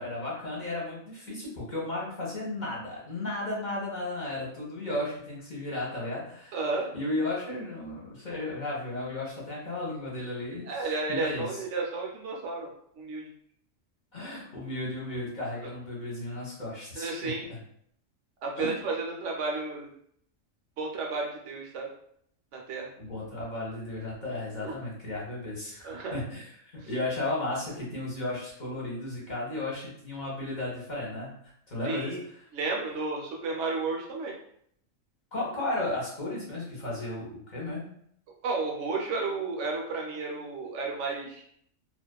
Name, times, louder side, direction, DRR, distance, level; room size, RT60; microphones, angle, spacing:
voice 1, 0.0-6.6 6.9-11.5 14.1-17.6 18.6-18.8 23.0-26.4 26.7-31.4 31.7-32.4 35.3-37.9, left 2 dB, 40° left, -5 dB, 0.9 m, -34 dB
voice 2, 6.5-6.9 10.7-12.7 13.0-13.2 17.0-17.5 18.4-19.9 20.8-21.9 22.5-22.9 24.6-24.7 25.8-26.2 26.7-26.9 31.8-32.2 32.5-34.4 38.4-41.4, right 3 dB, 70° right, -1 dB, 0.9 m, -32 dB
2.5 x 2.3 x 2.2 m, 0.67 s
omnidirectional pair, 1.3 m